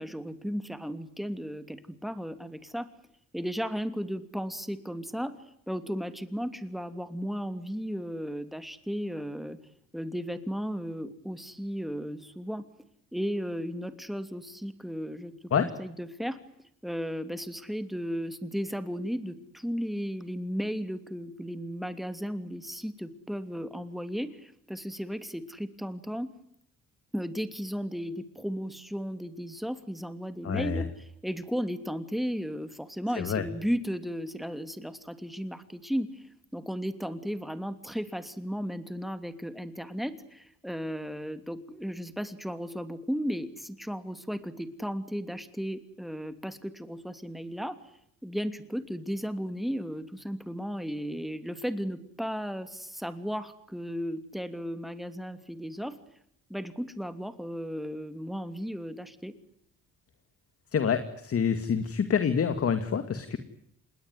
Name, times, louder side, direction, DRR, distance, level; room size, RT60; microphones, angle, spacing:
voice 1, 0.0-2.9 3.3-9.6 9.9-12.7 13.1-16.4 16.8-26.3 27.1-36.3 36.5-47.8 48.2-56.0 56.5-59.3, equal, ahead, 10 dB, 2.9 m, -35 dB
voice 2, 30.4-30.8 33.2-33.4 60.7-63.4, left 7 dB, 50° left, 9 dB, 2.4 m, -27 dB
27.5 x 21.0 x 9.5 m, 0.73 s
cardioid pair, 90°, 30 cm